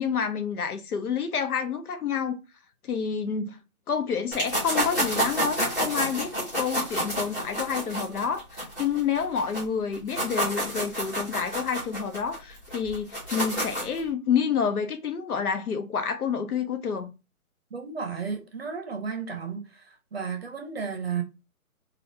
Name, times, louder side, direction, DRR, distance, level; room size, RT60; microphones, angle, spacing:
voice 1, 0.0-2.4 2.8-3.6 3.9-17.1, left 6 dB, 80° left, 0.8 m, -29 dB
sound 1, 4.3-9.6 9.9-14.0, equal, 10° left, 0.8 m, -29 dB
voice 2, 17.7-21.2, right 6 dB, 45° right, 0.6 m, -33 dB
3.4 x 2.4 x 2.7 m
hypercardioid pair, 165°, 44 cm